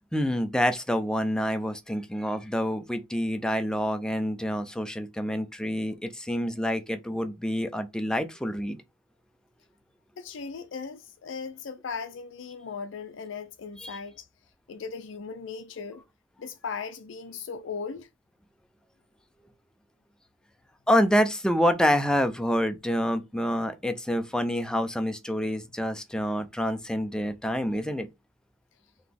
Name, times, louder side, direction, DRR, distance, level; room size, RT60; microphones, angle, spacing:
voice 1, 0.1-8.8 13.8-14.0 20.9-28.1, equal, 5° left, 0.5 m, -27 dB
voice 2, 10.2-14.3 14.7-16.0 16.4-18.1, left 5 dB, 70° left, 0.4 m, -37 dB
3.9 x 2.9 x 3.6 m
head